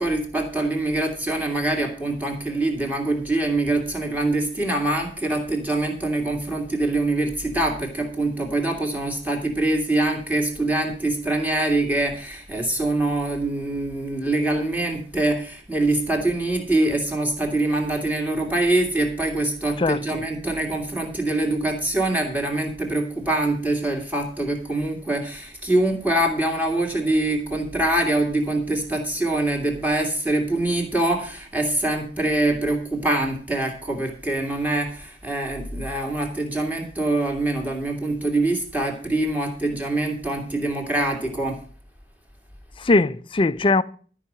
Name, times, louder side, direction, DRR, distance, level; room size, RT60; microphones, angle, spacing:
voice 1, 0.0-41.6, right 2 dB, 10° right, 2.6 m, -24 dB
voice 2, 19.8-20.2 42.8-43.8, left 3 dB, 30° left, 0.5 m, -20 dB
13.0 x 5.6 x 7.4 m
head